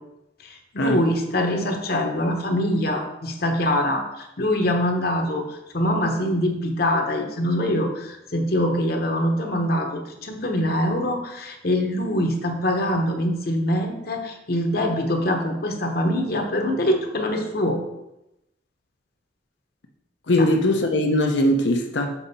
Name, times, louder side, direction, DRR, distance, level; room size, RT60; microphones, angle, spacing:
voice 1, 0.4-17.8 20.4-20.5, left 1 dB, 55° left, 3 dB, 1.0 m, -24 dB
voice 2, 20.3-22.1, left 1 dB, 75° left, 3 dB, 0.7 m, -20 dB
7.1 x 5.0 x 4.2 m, 0.90 s
head